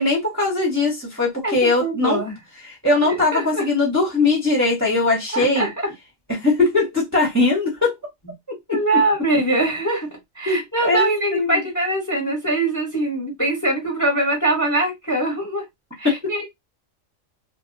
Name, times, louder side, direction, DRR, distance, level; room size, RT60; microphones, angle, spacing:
voice 1, 0.0-2.2 2.6-5.7 6.3-7.9 8.5-9.0 10.5-11.6 16.0-16.3, left 3 dB, 15° right, 0.7 m, -20 dB
voice 2, 1.4-2.3 3.3-3.6 5.3-5.9 8.7-10.1 10.4-15.6 16.0-16.5, right 2 dB, 15° left, 0.8 m, -22 dB
2.2 x 2.1 x 3.7 m
omnidirectional pair, 1.4 m